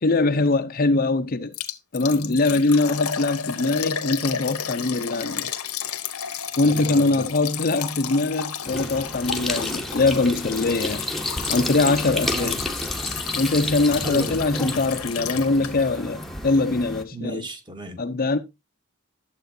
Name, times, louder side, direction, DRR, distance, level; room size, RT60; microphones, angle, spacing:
voice 1, 0.0-1.5 1.9-5.5 6.6-11.0 11.5-12.6 13.3-17.5 18.0-18.4, left 3 dB, 40° left, 0.6 m, -22 dB
Liquid, 1.5-16.0 16.2-16.3 16.8-16.9, left 8 dB, 85° left, 1.2 m, -32 dB
voice 2, 6.6-7.2 12.2-12.6 14.0-14.4 17.1-18.0, right 1 dB, 20° right, 1.1 m, -33 dB
sound 1, 8.6-17.0, left 1 dB, ahead, 0.8 m, -31 dB
11.5 x 7.5 x 2.6 m
head